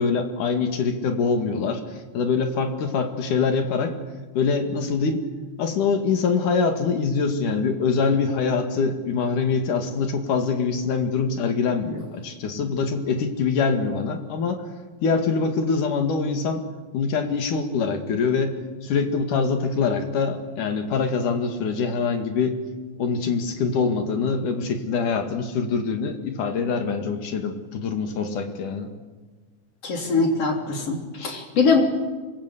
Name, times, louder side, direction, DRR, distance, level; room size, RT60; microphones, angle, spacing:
voice 1, 0.0-4.0 4.4-5.2 5.6-14.6 15.0-16.6 16.9-18.5 18.8-22.6 23.0-28.9, left 5 dB, 70° left, 5 dB, 3.6 m, -24 dB
voice 2, 29.8-31.8, left 4 dB, 45° left, 2 dB, 4.3 m, -22 dB
26.5 x 21.0 x 8.4 m, 1.3 s
omnidirectional pair, 3.7 m